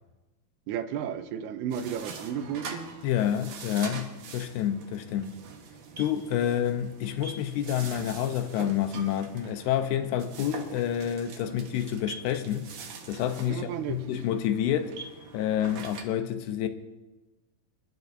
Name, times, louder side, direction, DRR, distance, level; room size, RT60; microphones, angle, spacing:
voice 1, 0.7-2.9 13.5-14.0, right 8 dB, 80° right, 2.8 m, -33 dB
sound 1, 1.7-16.0, right 4 dB, 60° right, 2.2 m, -44 dB
voice 2, 3.0-4.1 4.3-5.4 6.0-12.7 13.1-15.0 15.3-16.7, left 10 dB, 80° left, 2.7 m, -28 dB
26.5 x 12.0 x 2.6 m
omnidirectional pair, 4.6 m